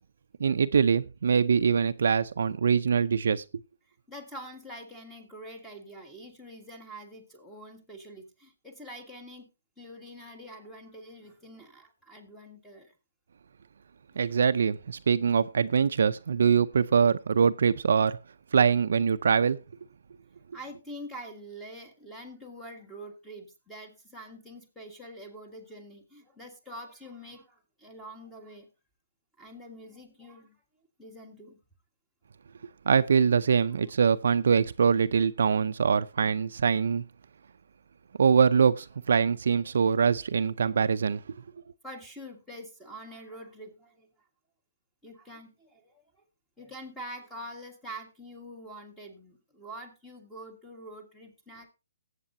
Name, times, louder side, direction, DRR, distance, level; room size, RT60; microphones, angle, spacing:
voice 1, 0.4-3.4 14.2-18.2 18.5-19.6 32.9-37.0 38.2-41.4, right 6 dB, 65° right, 0.5 m, -23 dB
voice 2, 3.9-9.5 9.8-12.9 14.1-14.3 20.5-28.7 29.4-30.6 31.0-31.6 41.8-44.1 45.0-46.0 46.6-51.7, equal, 5° left, 1.6 m, -45 dB
18.5 x 8.2 x 2.7 m
hypercardioid pair, 165°, 0 cm